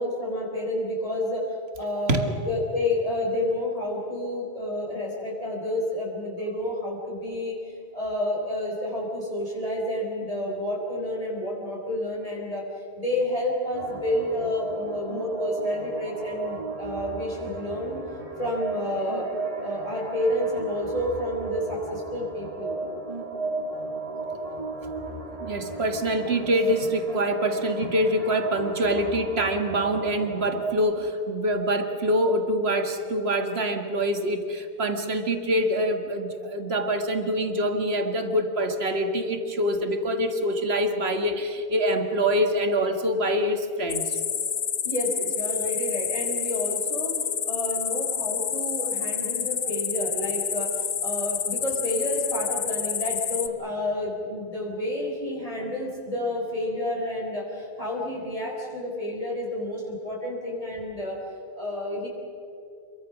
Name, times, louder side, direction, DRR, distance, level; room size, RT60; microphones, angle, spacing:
voice 1, 0.0-12.7 12.9-18.0 18.4-19.3 19.6-22.7 44.8-47.1 47.5-61.2 61.5-62.1, left 1 dB, 35° left, -3 dB, 4.8 m, -30 dB
sound 1, 13.7-30.7, right 3 dB, 35° right, 2.9 m, -35 dB
voice 2, 25.4-44.2, equal, 85° right, 6 dB, 2.0 m, -25 dB
sound 2, 43.9-53.5, left 7 dB, 75° left, 1.2 m, -29 dB
27.5 x 23.0 x 6.3 m, 2.7 s
omnidirectional pair, 1.0 m